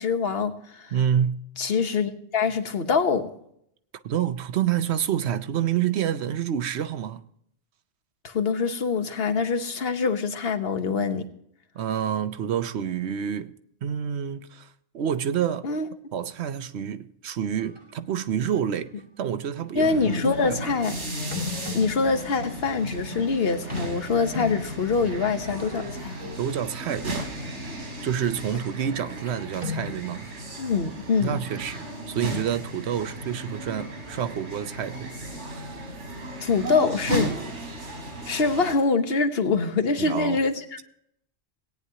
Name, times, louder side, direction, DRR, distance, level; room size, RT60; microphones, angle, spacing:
voice 1, 0.0-0.9 1.6-3.3 8.2-11.2 15.6-15.9 19.7-20.9 21.7-26.2 30.6-31.4 36.4-37.3 38.3-40.6, left 4 dB, 60° left, 1.2 m, -24 dB
voice 2, 0.9-1.4 4.0-7.2 11.7-13.6 13.8-15.7 16.1-20.7 26.4-27.3 28.0-30.3 31.2-35.1 35.4-36.0 40.0-40.4, right 9 dB, 70° right, 0.9 m, -28 dB
sound 1, 17.4-17.9 18.4-19.0 19.7-19.8 21.3-30.0, left 4 dB, 25° right, 1.2 m, -39 dB
sound 2, 19.8-38.7, right 1 dB, 90° right, 4.8 m, -35 dB
18.0 x 9.6 x 2.8 m
omnidirectional pair, 1.2 m